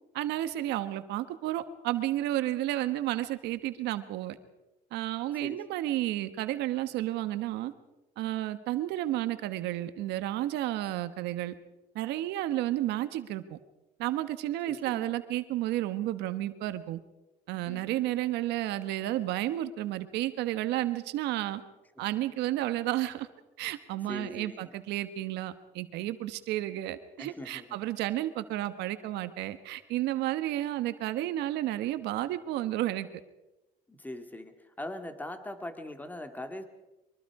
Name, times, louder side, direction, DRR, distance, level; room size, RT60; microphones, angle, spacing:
voice 1, 0.1-4.4 4.9-7.7 8.2-11.5 11.9-13.6 14.0-17.0 17.5-21.6 22.0-23.3 23.6-33.1, right 14 dB, 85° right, 11 dB, 1.3 m, -32 dB
voice 2, 14.6-15.2 17.7-18.1 22.0-22.1 24.1-24.7 27.2-27.8 33.9-36.6, left 1 dB, 10° left, 7 dB, 2.1 m, -41 dB
23.5 x 23.5 x 4.9 m, 1.0 s
cardioid pair, 110°, 17 cm